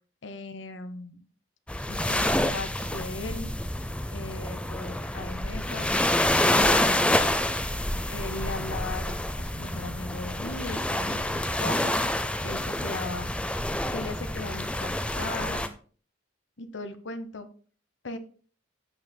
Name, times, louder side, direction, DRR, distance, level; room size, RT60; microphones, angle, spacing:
voice 1, 0.2-1.2 1.9-3.5 4.1-6.0 6.5-7.1 8.1-13.3 13.9-15.6 16.6-17.5 18.0-18.2, left 2 dB, 75° left, 10 dB, 1.0 m, -38 dB
sound 1, 1.7-15.7, left 1 dB, 5° left, 0.5 m, -27 dB
15.5 x 6.4 x 2.2 m, 0.41 s
head